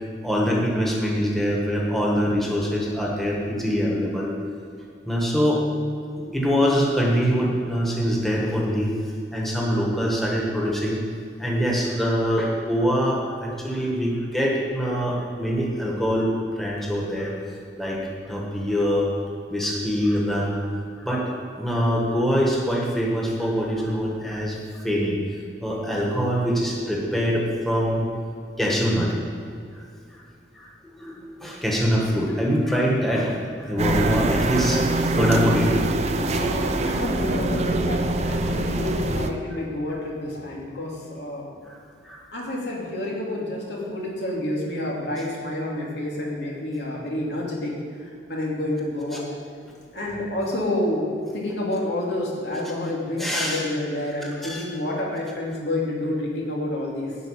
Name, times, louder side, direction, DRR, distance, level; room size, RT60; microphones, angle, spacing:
voice 1, 0.2-4.3 5.1-5.6 6.3-8.9 9.3-11.0 11.4-17.3 17.8-18.0 18.2-19.1 19.5-20.6 21.0-24.6 24.8-25.2 25.6-28.1 28.6-29.1 30.6-35.7 36.3-36.4 42.0-42.2 53.2-53.6 54.2-54.6, equal, ahead, -3 dB, 1.6 m, -24 dB
sound 1, 33.8-39.3, right 2 dB, 40° right, 0.7 m, -24 dB
voice 2, 36.2-38.0 38.3-41.4 42.3-47.7 48.0-49.2 49.9-51.1 51.3-57.2, left 1 dB, 80° left, -3 dB, 2.7 m, -29 dB
12.0 x 5.2 x 8.7 m, 2.4 s
head